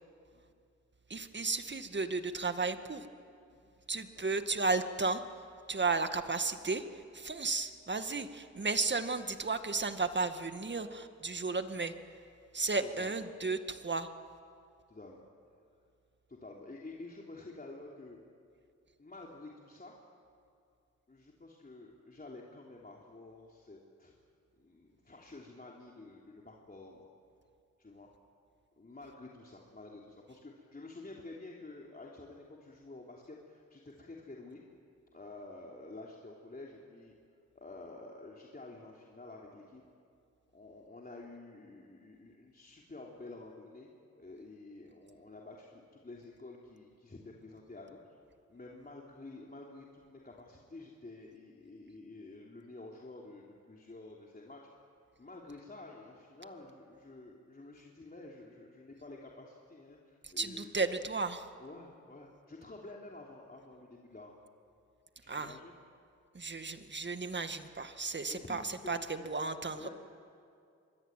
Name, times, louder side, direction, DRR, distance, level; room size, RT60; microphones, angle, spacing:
voice 1, 1.1-3.1 3.9-5.2 5.7-6.8 7.1-11.9 12.5-14.1 60.2-61.5 65.3-65.6 66.3-69.9, right 4 dB, 40° right, 8 dB, 1.9 m, -34 dB
voice 2, 12.8-13.2 14.9-15.2 16.3-18.2 19.0-19.9 21.1-24.1 24.6-27.1 27.8-28.1 28.8-34.6 35.1-37.1 37.6-39.8 40.5-43.9 44.2-48.2 48.5-54.6 55.2-60.7 61.6-64.5 65.2-65.8 68.3-69.4 69.7-69.9, left 2 dB, 30° left, -2 dB, 3.5 m, -50 dB
25.0 x 22.5 x 9.2 m, 2.4 s
cardioid pair, 55°, 29 cm